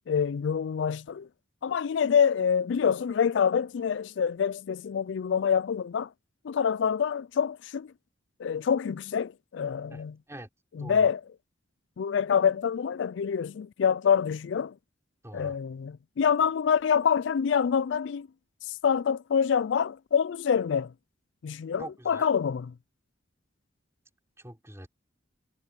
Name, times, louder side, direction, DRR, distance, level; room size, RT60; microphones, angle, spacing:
voice 1, 0.1-1.3 1.6-6.1 6.4-7.9 8.4-10.2 10.7-11.3 12.0-14.8 15.3-18.3 18.6-20.9 21.4-22.8, left 7 dB, 65° left, 0.3 m, -26 dB
voice 2, 10.8-11.1 15.2-15.6 21.8-22.2 24.4-24.9, right 1 dB, 15° right, 5.1 m, -43 dB
head